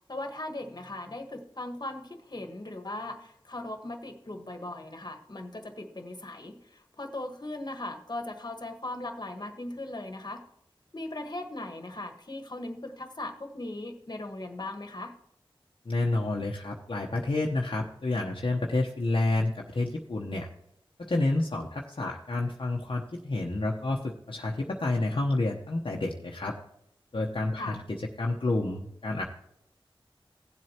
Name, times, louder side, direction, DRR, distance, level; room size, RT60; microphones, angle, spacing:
voice 1, 0.1-10.4 10.9-15.1 27.6-27.8, left 2 dB, 50° left, 5 dB, 1.4 m, -38 dB
voice 2, 15.9-20.5 21.0-26.6 27.1-27.8 28.2-29.2, left 2 dB, 65° left, -1 dB, 1.0 m, -29 dB
16.5 x 7.7 x 2.9 m, 0.74 s
cardioid pair, 40°, 10 cm